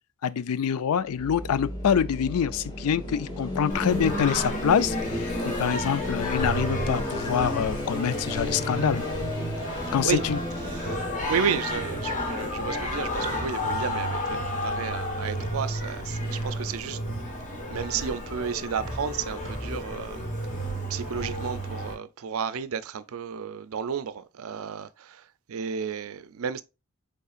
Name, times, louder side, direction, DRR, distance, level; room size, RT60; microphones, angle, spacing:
voice 1, 0.2-9.0 9.9-10.4, left 8 dB, 90° left, 0.4 m, -26 dB
sound 1, 1.1-15.0, left 1 dB, 20° left, 2.2 m, -34 dB
Singing, 3.7-21.9, equal, 35° left, 1.3 m, -32 dB
voice 2, 10.6-17.0 17.7-20.3 20.6-26.6, right 7 dB, 70° right, 0.4 m, -32 dB
5.5 x 3.6 x 2.4 m
head